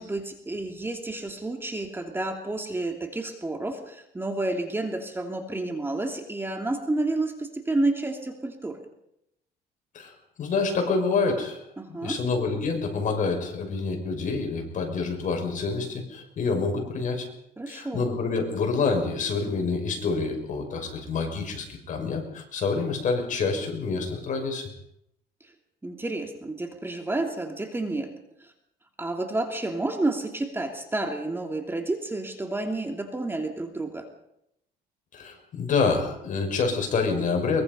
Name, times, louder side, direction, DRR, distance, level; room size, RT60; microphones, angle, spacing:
voice 1, 0.0-8.8 11.8-12.2 17.6-18.1 25.8-28.1 28.4-28.5 29.0-34.1, right 2 dB, 15° right, 4 dB, 2.7 m, -30 dB
voice 2, 9.9-11.6 11.9-17.3 17.7-24.7 35.1-37.6, left 4 dB, 50° left, 3 dB, 6.1 m, -27 dB
23.0 x 22.5 x 5.5 m, 0.79 s
cardioid pair, 110°, 17 cm